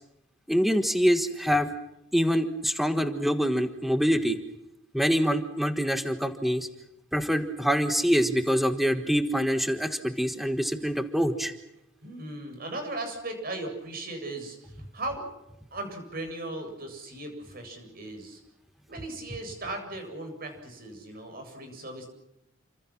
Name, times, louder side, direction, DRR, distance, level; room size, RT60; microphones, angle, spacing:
voice 1, 0.5-1.7 2.1-4.4 4.9-6.7 7.1-11.5, equal, ahead, 7 dB, 1.5 m, -25 dB
voice 2, 12.0-15.3 15.7-18.4 18.9-22.1, right 2 dB, 45° right, 5 dB, 7.9 m, -37 dB
29.5 x 26.0 x 6.1 m, 0.85 s
head